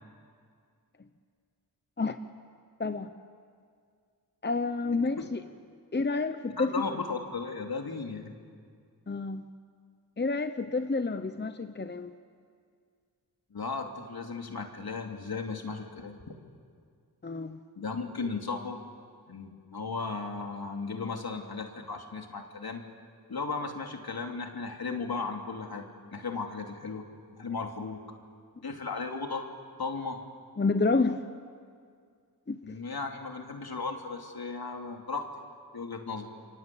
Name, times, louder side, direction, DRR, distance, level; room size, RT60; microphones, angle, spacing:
voice 1, 2.8-3.1 4.4-5.4 5.9-6.9 9.1-9.5 10.2-12.1 17.2-17.6 30.6-31.2 32.5-32.8, left 3 dB, 25° left, 9 dB, 1.0 m, -29 dB
voice 2, 6.6-8.3 13.5-16.3 17.8-18.8 19.3-22.8 23.3-25.8 26.1-27.0 27.4-28.0 28.6-29.4 29.8-30.2 32.6-35.3 35.7-36.3, left 4 dB, 70° left, 3 dB, 3.1 m, -36 dB
28.5 x 24.5 x 8.6 m, 2.1 s
wide cardioid pair, 70°, 39 cm